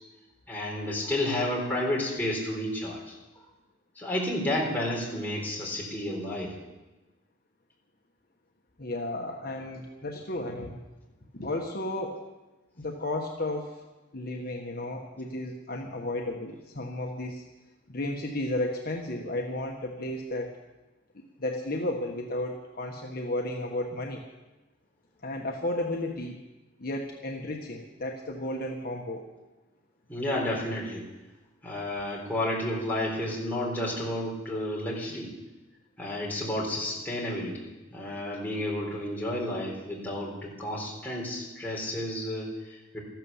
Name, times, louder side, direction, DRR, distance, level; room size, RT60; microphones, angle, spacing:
voice 1, 0.5-3.2 4.0-6.5 30.1-31.0 31.6-35.3 36.0-43.0, left 1 dB, 10° left, -3 dB, 4.0 m, -31 dB
voice 2, 8.8-10.8 11.3-12.2 12.8-13.8 14.1-17.4 17.9-20.5 21.4-24.2 25.2-26.4 26.8-29.3, left 1 dB, 50° left, 1 dB, 1.3 m, -33 dB
14.0 x 12.0 x 7.2 m, 1.1 s
head